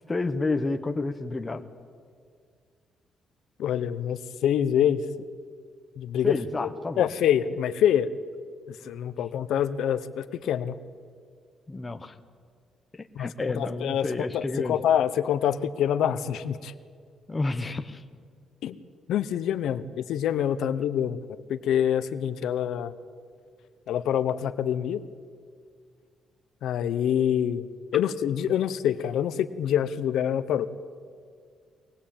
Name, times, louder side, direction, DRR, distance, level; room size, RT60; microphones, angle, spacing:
voice 1, 0.1-1.6 6.2-7.1 11.7-12.1 12.9-14.8 17.3-18.0, left 3 dB, 15° left, 5 dB, 1.0 m, -30 dB
voice 2, 3.6-5.0 6.0-6.3 6.6-6.7 7.0-8.1 8.7-10.7 13.2-13.3 13.6-16.7 18.6-18.8 19.1-21.2 21.5-22.9 23.9-25.0 26.6-27.7 27.9-30.7, left 9 dB, 75° left, 11 dB, 0.9 m, -26 dB
23.5 x 19.5 x 8.7 m, 2.1 s
cardioid pair, 175°, 0 cm